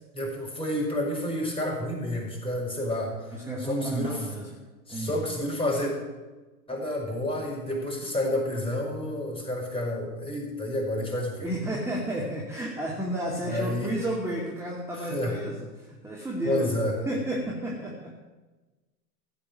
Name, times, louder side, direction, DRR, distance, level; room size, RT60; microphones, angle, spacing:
voice 1, 0.1-4.2 4.9-5.9 6.7-11.5 13.5-13.9 15.0-15.3 16.4-16.9, left 1 dB, 10° left, -1 dB, 5.4 m, -30 dB
voice 2, 3.3-4.5 4.9-5.2 11.4-18.1, right 1 dB, 5° right, -3 dB, 2.7 m, -32 dB
15.0 x 8.6 x 9.5 m, 1.2 s
figure-of-eight pair, 100°, 49 cm